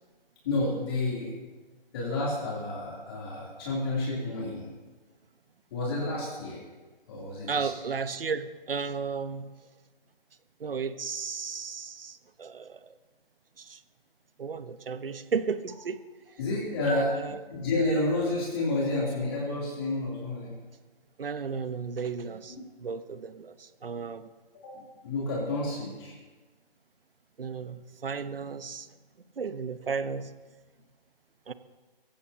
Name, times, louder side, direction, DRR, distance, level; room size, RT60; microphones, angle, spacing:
voice 1, 0.4-1.3 1.9-4.7 5.7-6.6 7.1-7.7 16.4-17.2 17.5-20.5 22.5-22.6 24.6-26.1, left 2 dB, 25° left, -5 dB, 3.2 m, -30 dB
voice 2, 7.5-9.5 10.6-12.9 13.6-13.8 14.4-16.0 16.8-17.4 21.2-24.3 27.4-28.9 29.4-30.3 31.5-31.6, right 5 dB, 75° right, 12 dB, 1.1 m, -34 dB
24.0 x 15.5 x 2.9 m, 1.3 s
hypercardioid pair, 165°, 29 cm